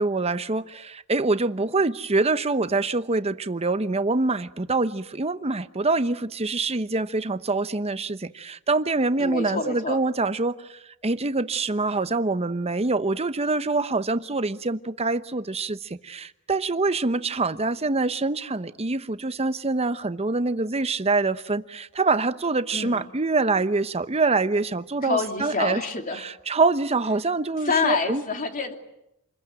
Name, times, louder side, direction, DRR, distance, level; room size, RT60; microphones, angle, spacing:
voice 1, 0.0-25.8 26.2-28.2, right 3 dB, 30° right, 12 dB, 0.9 m, -25 dB
voice 2, 9.2-10.0 22.7-23.1 25.0-26.3 27.6-28.7, left 4 dB, 40° left, 5 dB, 2.9 m, -27 dB
28.0 x 21.5 x 9.1 m, 0.84 s
head